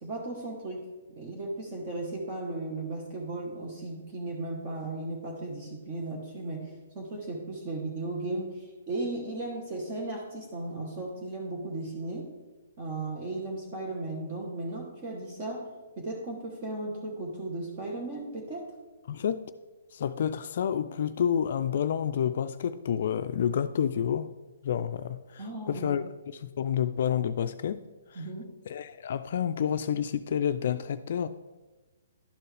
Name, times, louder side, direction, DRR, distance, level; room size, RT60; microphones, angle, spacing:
voice 1, 0.0-12.3 12.8-18.7 25.4-26.0 28.1-28.5, right 2 dB, 35° right, 0 dB, 1.2 m, -36 dB
voice 2, 19.1-19.4 19.9-24.3 24.6-26.0 26.3-27.8 28.1-28.3 28.7-31.3, left 8 dB, 55° left, 11 dB, 0.3 m, -29 dB
11.5 x 4.5 x 3.3 m, 1.2 s
hypercardioid pair, 150°, 0 cm